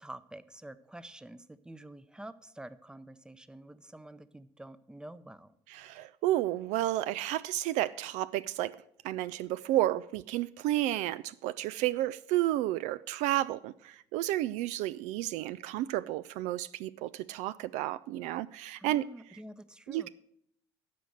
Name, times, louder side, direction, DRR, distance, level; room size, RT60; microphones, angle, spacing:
voice 1, 0.0-5.5 18.8-20.1, right 1 dB, 5° right, 0.7 m, -48 dB
voice 2, 5.7-8.8 9.0-19.0 19.9-20.1, right 14 dB, 65° right, 0.4 m, -31 dB
13.0 x 5.1 x 7.8 m
hypercardioid pair, 55°, 14 cm